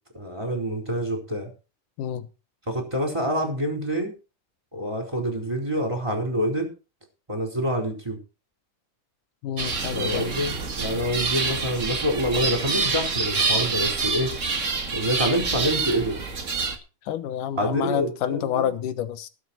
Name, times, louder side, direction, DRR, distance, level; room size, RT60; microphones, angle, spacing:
voice 1, 0.1-1.5 2.7-4.2 4.7-6.7 7.3-8.2 9.9-14.3 14.9-16.2 17.6-18.7, equal, 10° right, 4.1 m, -27 dB
voice 2, 9.4-10.2 17.1-19.3, left 10 dB, 80° left, 2.6 m, -28 dB
sound 1, 9.6-16.8, right 4 dB, 35° right, 1.2 m, -27 dB
20.0 x 7.7 x 4.4 m
omnidirectional pair, 3.7 m